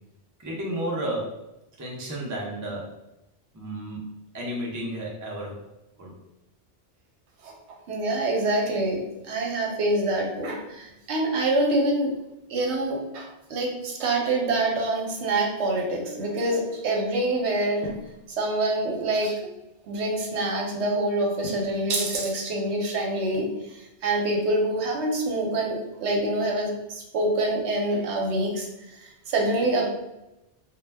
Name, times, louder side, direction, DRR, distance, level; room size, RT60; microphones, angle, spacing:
voice 1, 0.4-1.4 1.8-2.9 3.5-5.6 6.0-6.1, right 1 dB, 30° right, -2 dB, 0.3 m, -32 dB
voice 2, 7.9-12.1 12.5-17.9 18.3-19.4 19.9-29.9, right 2 dB, 75° right, 0 dB, 0.9 m, -26 dB
2.1 x 2.1 x 3.2 m, 0.92 s
omnidirectional pair, 1.2 m